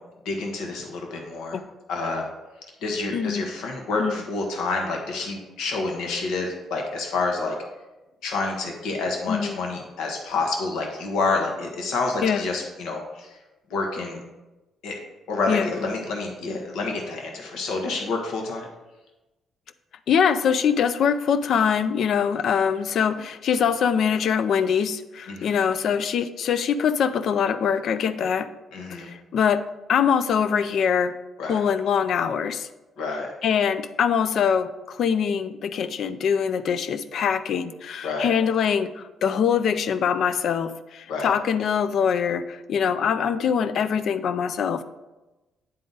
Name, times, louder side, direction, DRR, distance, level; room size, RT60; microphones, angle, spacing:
voice 1, 0.2-1.6 1.9-2.2 2.8-7.5 8.2-13.3 13.7-14.2 14.8-15.0 15.3-18.7 25.3-25.5 28.7-29.1 31.4-31.6 33.0-33.3 38.0-38.3 41.1-41.3, left 3 dB, 85° left, 1 dB, 1.1 m, -28 dB
voice 2, 3.1-3.5 4.0-4.2 9.3-9.6 12.2-12.4 15.5-15.7 20.1-28.5 28.9-31.2 31.5-32.7 33.4-44.8, left 7 dB, 65° left, 11 dB, 0.4 m, -23 dB
9.4 x 3.8 x 3.9 m, 1.1 s
cardioid pair, 90°, 0 cm